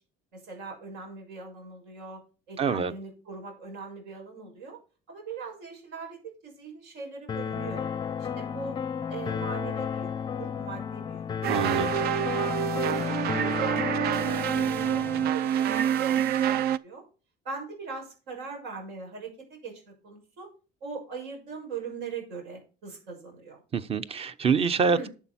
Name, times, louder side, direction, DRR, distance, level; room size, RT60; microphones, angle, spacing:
voice 1, 0.3-2.2 2.5-4.8 5.1-7.9 8.2-8.8 9.1-11.2 11.6-17.0 17.4-20.5 20.8-23.6 24.9-25.1, right 4 dB, 85° right, 6.3 m, -40 dB
voice 2, 2.6-2.9 11.5-11.9 23.7-25.1, right 5 dB, 35° right, 0.9 m, -25 dB
sound 1, 7.3-15.3, left 7 dB, 25° left, 0.5 m, -32 dB
sound 2, 11.4-16.8, right 10 dB, 65° right, 0.5 m, -27 dB
11.5 x 7.2 x 4.3 m
cardioid pair, 125°, 17 cm